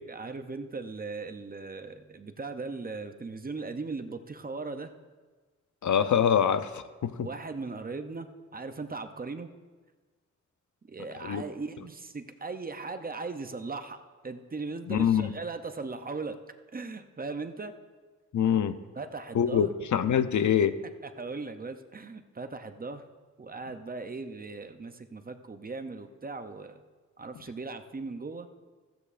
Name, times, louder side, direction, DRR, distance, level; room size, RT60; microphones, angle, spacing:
voice 1, 0.1-4.9 7.2-9.5 10.9-16.4 16.7-17.7 19.0-19.7 21.0-23.0 23.4-26.8 27.2-28.5, right 3 dB, 30° right, 8 dB, 0.5 m, -38 dB
voice 2, 5.8-7.3 11.2-11.4 14.9-15.3 18.3-18.8 19.3-20.8, left 8 dB, 70° left, 12 dB, 0.6 m, -25 dB
15.0 x 14.5 x 2.5 m, 1.4 s
wide cardioid pair, 170°, 31 cm